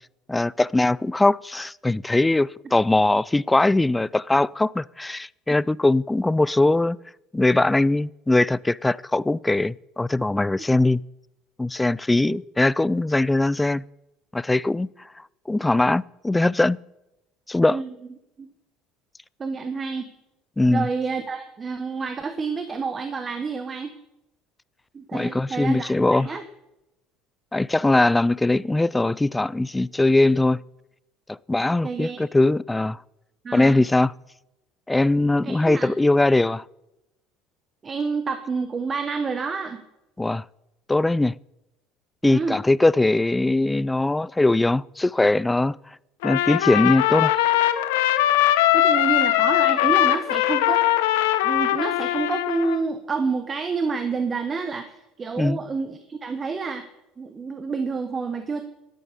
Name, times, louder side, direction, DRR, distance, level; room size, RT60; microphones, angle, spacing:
voice 1, 0.3-7.0 7.3-11.0 11.6-13.8 14.3-14.9 15.5-16.8 17.5-17.8 20.6-20.9 25.1-26.3 27.5-30.6 31.5-33.0 33.5-34.1 34.9-36.6 40.2-40.4 40.9-41.3 42.2-45.8 46.2-47.4 55.4-55.6, left 2 dB, 10° left, 0.3 m, -21 dB
voice 2, 19.4-20.1 20.7-23.9 24.9-26.4 31.8-32.3 33.4-33.9 35.4-35.9 37.8-39.8 42.2-42.6 48.7-50.8 51.4-56.9 57.2-58.6, right 4 dB, 30° right, 1.1 m, -28 dB
Trumpet, 46.2-52.8, left 14 dB, 85° left, 0.8 m, -21 dB
12.0 x 9.1 x 6.8 m
supercardioid pair, 90°, 0 cm